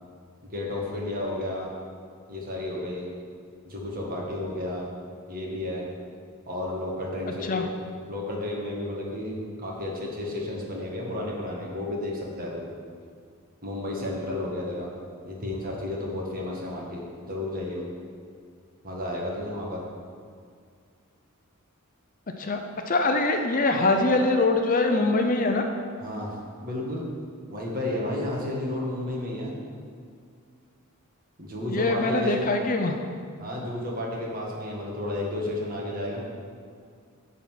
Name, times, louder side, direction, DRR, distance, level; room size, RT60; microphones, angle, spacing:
voice 1, 0.4-1.7 2.3-3.1 3.6-4.9 5.3-5.8 6.5-7.7 8.1-12.6 13.6-14.9 15.2-17.8 18.8-19.8 26.0-27.0 27.5-29.5 31.4-32.4 33.4-36.2, left 1 dB, 40° right, -3 dB, 1.8 m, -32 dB
voice 2, 22.9-25.6 31.7-33.0, left 2 dB, 40° left, 4 dB, 0.6 m, -23 dB
10.0 x 4.2 x 7.5 m, 2.1 s
head